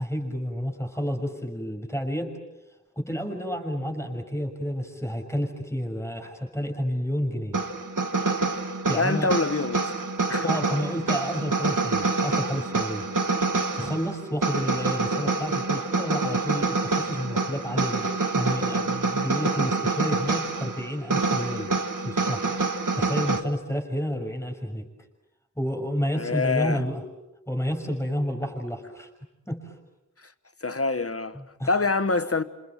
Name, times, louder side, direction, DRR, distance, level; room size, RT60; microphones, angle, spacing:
voice 1, 0.0-2.3 3.0-7.6 8.9-9.3 10.4-13.1 13.7-21.7 22.0-22.4 22.9-24.8 25.6-27.0 27.5-29.1 29.5-29.7 31.3-31.7, equal, 10° left, 6.3 m, -30 dB
sound 1, 7.5-23.4, right 3 dB, 90° right, 1.9 m, -26 dB
voice 2, 8.9-9.9 10.3-10.5 26.2-26.8 30.6-31.4 31.7-32.4, left 3 dB, 50° left, 1.4 m, -25 dB
27.5 x 27.5 x 7.5 m
wide cardioid pair, 55°, 30 cm